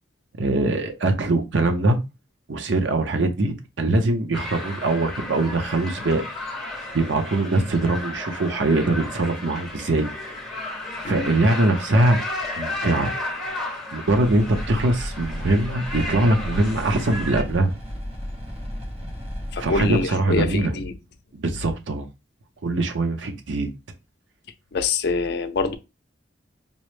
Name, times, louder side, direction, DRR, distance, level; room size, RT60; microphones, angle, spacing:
voice 1, 0.4-2.0 2.5-6.2 6.9-10.1 11.0-12.2 12.6-13.1 13.9-17.7 19.6-20.7 21.3-22.1 22.6-23.7, right 2 dB, 75° right, 0.7 m, -22 dB
sound 1, 4.3-17.4, left 2 dB, ahead, 1.0 m, -33 dB
sound 2, 14.1-20.0, equal, 35° right, 0.7 m, -33 dB
voice 2, 19.5-20.9 24.7-25.7, left 3 dB, 60° left, 0.4 m, -25 dB
5.4 x 2.0 x 3.1 m
head